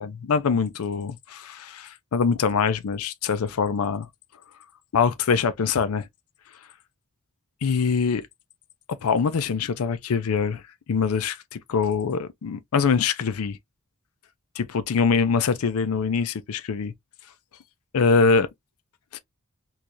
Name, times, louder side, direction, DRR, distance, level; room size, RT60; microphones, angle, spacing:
voice 1, 0.0-4.1 4.9-6.1 7.6-8.3 9.0-10.6 10.9-13.6 14.6-16.9 17.9-18.5 19.1-19.2, left 5 dB, 80° left, 0.5 m, -23 dB
4.4 x 2.4 x 2.6 m
head